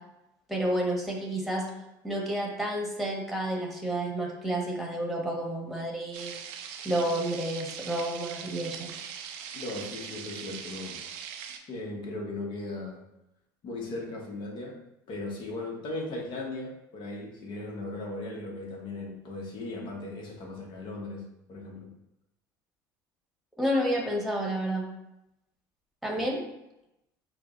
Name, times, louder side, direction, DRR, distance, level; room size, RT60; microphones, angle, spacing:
voice 1, 0.5-1.7 2.0-6.4 6.8-8.9 23.6-24.9 26.0-26.4, right 1 dB, ahead, -1 dB, 1.2 m, -30 dB
sound 1, 6.1-11.6, right 8 dB, 70° right, 0.4 m, -41 dB
voice 2, 9.5-11.0 11.7-13.0 13.6-21.9 26.1-26.2, left 2 dB, 50° left, 0 dB, 1.0 m, -37 dB
5.9 x 2.1 x 2.4 m, 0.89 s
hypercardioid pair, 75°, 10 cm